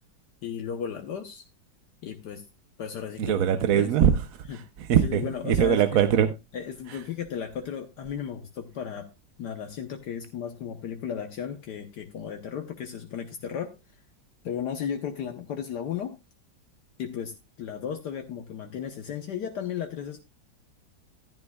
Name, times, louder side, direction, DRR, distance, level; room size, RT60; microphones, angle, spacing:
voice 1, 0.4-1.4 2.0-2.4 2.8-3.4 3.7-3.9 5.1-5.8 6.5-9.1 9.4-13.7 14.4-16.2 17.0-20.2, left 8 dB, 70° left, 1.5 m, -34 dB
voice 2, 3.2-6.3 6.9-7.0, right 9 dB, 60° right, 1.0 m, -23 dB
14.0 x 11.5 x 2.3 m
omnidirectional pair, 1.9 m